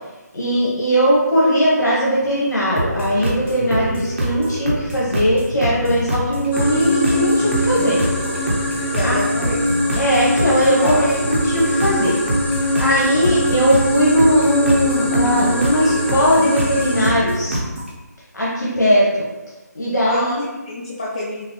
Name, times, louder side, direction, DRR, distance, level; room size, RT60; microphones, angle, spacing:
voice 1, 0.3-8.0 8.3-8.4 9.0-9.2 10.0-12.1 12.8-17.6 18.3-19.2 19.7-20.4, equal, 75° left, -6 dB, 1.4 m, -19 dB
sound 1, 2.8-17.9, right 1 dB, 40° right, 0.7 m, -25 dB
sound 2, 6.5-17.1, left 1 dB, 35° left, 0.7 m, -22 dB
voice 2, 8.9-9.7 10.3-10.4 10.8-11.1 20.0-20.3 20.6-21.5, left 1 dB, 20° left, -6 dB, 0.3 m, -27 dB
5.5 x 2.1 x 3.1 m, 1.1 s
figure-of-eight pair, 165°, 10 cm